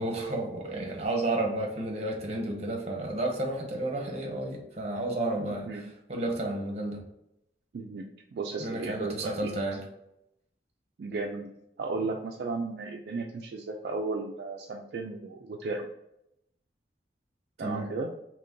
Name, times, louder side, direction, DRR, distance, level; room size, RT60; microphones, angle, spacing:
voice 1, 0.0-5.7 6.1-7.0 8.6-9.8 17.6-17.9, right 2 dB, 35° right, 2 dB, 0.7 m, -31 dB
voice 2, 5.5-5.8 7.7-9.5 11.0-11.5 11.8-15.9 17.6-18.1, right 3 dB, 60° right, 1 dB, 0.3 m, -35 dB
2.9 x 2.6 x 3.6 m, 0.82 s
head